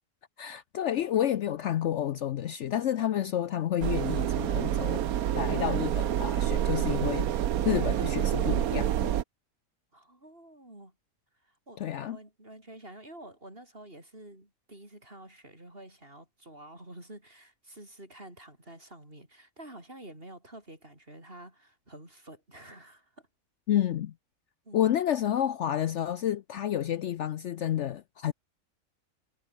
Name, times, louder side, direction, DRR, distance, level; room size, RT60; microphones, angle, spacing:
voice 1, 0.4-5.0 5.3-7.4 7.6-9.1 11.8-12.2 23.7-24.1 24.7-28.3, left 11 dB, 65° left, 0.9 m, -30 dB
sound 1, 3.8-9.2, right 11 dB, 90° right, 1.3 m, -28 dB
voice 2, 9.9-11.0 11.3-23.3 24.6-25.0, right 1 dB, 40° right, 7.8 m, -49 dB
omnidirectional pair, 1.5 m